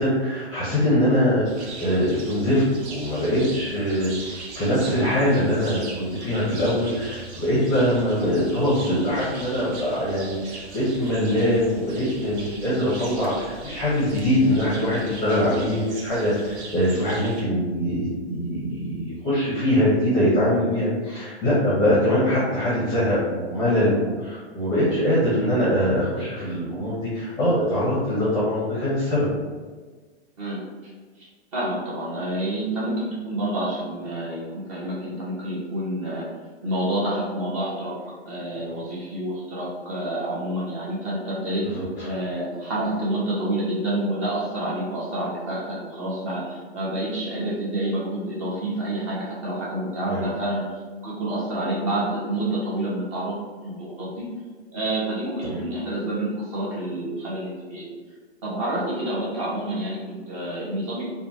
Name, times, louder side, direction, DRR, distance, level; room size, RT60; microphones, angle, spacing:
voice 1, 0.0-29.3 38.5-38.6 41.6-42.1 50.1-50.2 55.4-55.6, equal, 10° left, -9 dB, 0.6 m, -23 dB
sound 1, 1.5-17.4, right 3 dB, 75° right, 0.6 m, -40 dB
voice 2, 30.4-30.9 31.5-36.3 36.6-38.0 38.3-41.7 42.0-54.3 54.7-57.9 58.4-61.0, right 1 dB, 30° right, -6 dB, 0.8 m, -28 dB
3.0 x 2.2 x 2.6 m, 1.4 s
hypercardioid pair, 150°, 34 cm